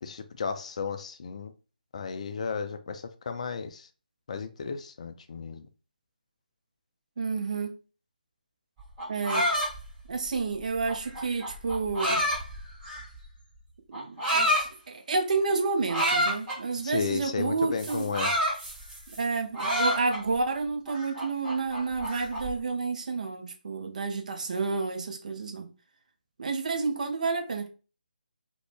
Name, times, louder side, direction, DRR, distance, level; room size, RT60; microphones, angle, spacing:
voice 1, 0.0-1.5 1.9-3.9 4.3-5.7 16.8-18.3, left 5 dB, 45° left, 0.3 m, -34 dB
voice 2, 7.2-7.8 9.1-9.5 10.1-12.2 13.9-18.1 19.1-25.7 26.4-27.7, right 4 dB, 50° right, 0.5 m, -30 dB
sound 1, 8.8-13.2 13.9-14.7 15.9-16.6 17.8-19.2 19.5-20.4 20.9-22.5, equal, 20° right, 1.3 m, -28 dB
2.5 x 2.1 x 3.2 m
figure-of-eight pair, 150°, 5 cm